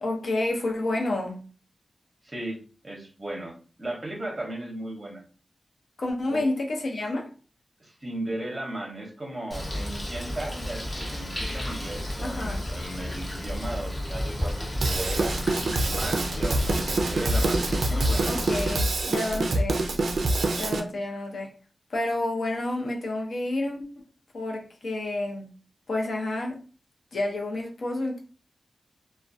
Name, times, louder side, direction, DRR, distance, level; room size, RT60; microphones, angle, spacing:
voice 1, 0.0-1.4 6.0-7.3 12.2-12.6 18.3-19.8 20.6-21.6 21.9-24.0 24.3-25.5 25.9-26.6 27.1-28.2, left 2 dB, 65° left, 0.6 m, -29 dB
voice 2, 2.2-5.2 6.3-6.4 7.8-15.4 15.8-17.6 17.9-18.3 19.4-19.5, right 1 dB, 20° right, 0.7 m, -36 dB
Bird, 9.5-18.7, left 1 dB, 30° left, 0.8 m, -32 dB
Drum kit / Drum, 14.8-20.8, right 2 dB, 75° right, 0.3 m, -26 dB
2.3 x 2.1 x 2.6 m
wide cardioid pair, 110°, 0 cm